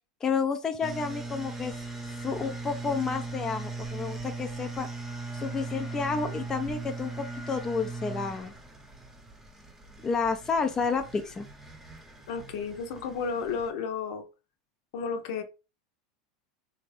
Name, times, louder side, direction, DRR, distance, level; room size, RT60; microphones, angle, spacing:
voice 1, 0.2-1.7 2.2-4.9 5.3-8.5 10.0-11.5, left 5 dB, 20° left, 0.5 m, -30 dB
sound 1, 0.8-13.7, right 3 dB, 10° right, 0.8 m, -39 dB
voice 2, 12.3-14.2 14.9-15.4, left 5 dB, 70° left, 0.8 m, -32 dB
3.5 x 2.5 x 3.3 m
supercardioid pair, 125°, 3 cm